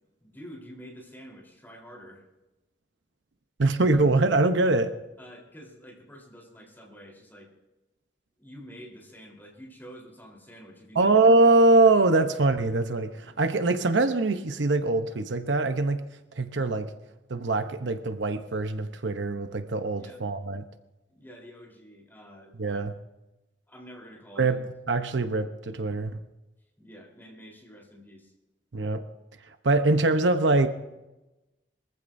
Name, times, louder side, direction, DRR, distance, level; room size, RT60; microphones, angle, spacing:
voice 1, 0.2-2.2 5.2-7.5 8.4-11.1 20.0-20.2 21.1-22.8 23.7-24.6 26.8-28.3, equal, 10° left, -2 dB, 3.8 m, -48 dB
voice 2, 3.6-4.9 11.0-16.0 16.4-16.9 17.3-20.6 22.6-22.9 24.4-26.1 28.7-29.0 29.6-30.7, right 2 dB, 80° right, 9 dB, 0.8 m, -23 dB
23.0 x 14.5 x 2.7 m, 1.0 s
head